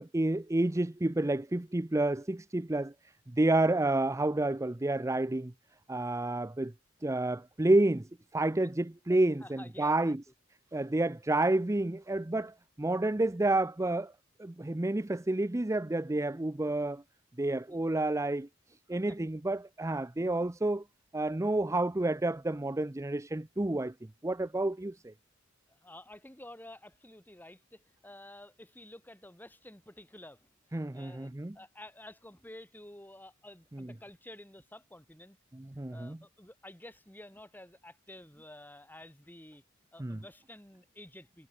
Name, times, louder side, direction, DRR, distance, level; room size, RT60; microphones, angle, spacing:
voice 1, 0.0-2.9 3.3-5.5 5.9-6.7 7.0-10.2 10.7-14.1 14.4-17.0 17.4-18.5 18.9-20.8 21.1-23.9 24.2-25.1 30.7-31.6 33.7-33.9 35.5-36.2 40.0-40.2, right 2 dB, 15° right, 0.6 m, -30 dB
voice 2, 9.4-10.1 17.7-17.8 18.9-19.2 25.7-30.5 30.9-35.4 35.9-39.6 39.9-41.5, left 1 dB, 10° left, 5.6 m, -51 dB
head